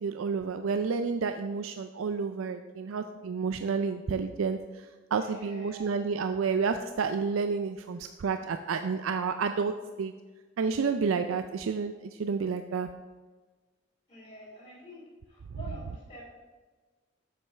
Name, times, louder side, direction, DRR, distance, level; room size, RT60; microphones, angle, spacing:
voice 1, 0.0-10.1 10.6-12.9, right 5 dB, 90° right, 8 dB, 0.4 m, -30 dB
voice 2, 5.1-6.0 14.1-15.0 15.3-16.2, equal, 25° left, -10 dB, 2.9 m, -47 dB
7.5 x 5.5 x 5.8 m, 1.3 s
head